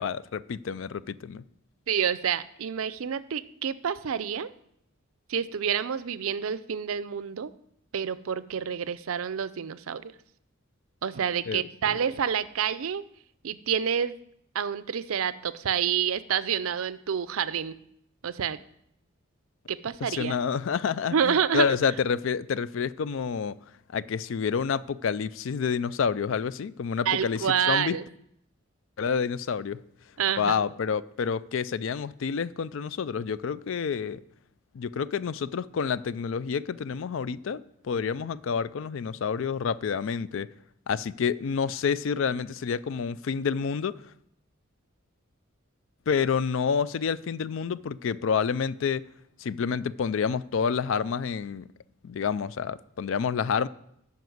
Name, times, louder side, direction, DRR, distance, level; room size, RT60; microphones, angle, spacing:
voice 1, 0.0-1.4 11.5-12.0 20.0-23.6 23.9-28.0 29.0-29.8 30.4-34.2 34.7-40.5 40.9-44.0 46.1-49.0 49.4-51.7 52.0-53.7, left 6 dB, 70° left, 0.4 m, -28 dB
voice 2, 1.9-4.5 5.3-7.5 7.9-10.1 11.0-13.0 13.4-14.1 14.5-17.8 18.2-18.6 19.7-20.4 21.1-21.7 27.1-28.0 30.2-30.7, right 8 dB, 90° right, 0.5 m, -28 dB
9.4 x 5.9 x 7.8 m
head